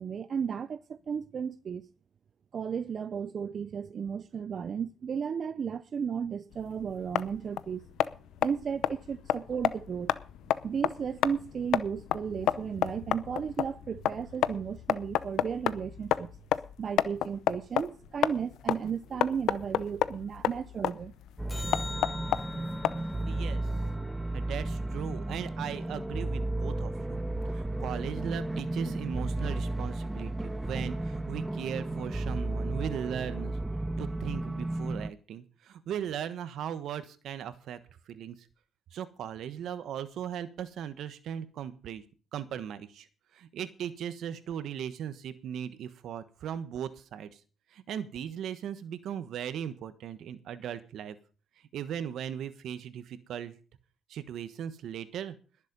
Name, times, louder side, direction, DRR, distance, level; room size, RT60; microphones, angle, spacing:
voice 1, 0.0-1.9 2.5-7.8 8.4-10.1 10.6-16.3 16.8-21.1, right 7 dB, 50° right, 0.6 m, -34 dB
sound 1, 6.5-23.3, left 12 dB, 85° left, 0.6 m, -31 dB
sound 2, 21.4-35.1, right 2 dB, 10° right, 0.7 m, -33 dB
sound 3, 21.5-26.0 32.5-32.6, left 3 dB, 25° left, 0.8 m, -46 dB
voice 2, 23.3-23.6 24.3-33.6 34.0-37.8 38.1-38.4 38.9-42.0 42.3-43.1 43.3-47.4 47.7-51.2 51.7-53.6 54.1-55.4, right 9 dB, 75° right, 1.3 m, -38 dB
20.5 x 7.5 x 5.4 m
cardioid pair, 90°, 0 cm